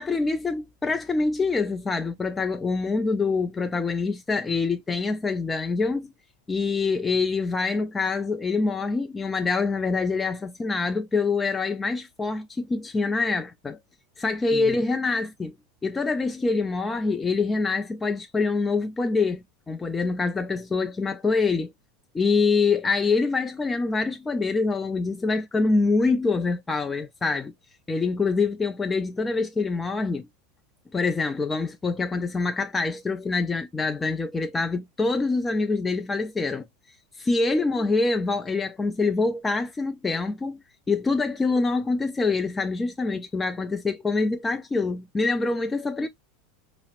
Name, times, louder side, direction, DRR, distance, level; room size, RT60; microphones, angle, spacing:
voice 1, 0.0-6.1 6.5-13.8 14.2-15.5 15.8-21.7 22.1-27.5 27.9-30.3 30.9-36.7 37.2-40.6 40.9-46.1, left 4 dB, 15° left, 0.4 m, -25 dB
4.8 x 2.0 x 2.8 m
hypercardioid pair, 100°, 0 cm